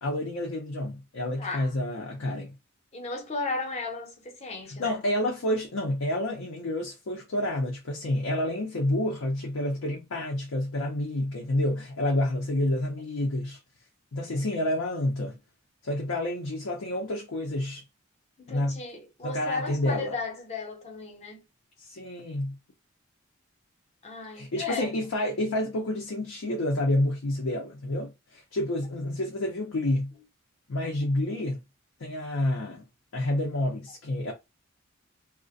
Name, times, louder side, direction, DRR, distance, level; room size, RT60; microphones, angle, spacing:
voice 1, 0.0-2.5 4.8-13.6 14.1-15.4 15.8-17.8 18.5-18.8 19.2-20.1 21.8-22.6 24.3-30.1 30.7-31.6 32.0-32.9 33.1-34.3, left 1 dB, 75° left, 0.6 m, -29 dB
voice 2, 1.4-1.7 2.9-5.0 18.4-21.4 24.0-24.9, left 3 dB, 30° left, 0.7 m, -35 dB
2.4 x 2.1 x 2.5 m
head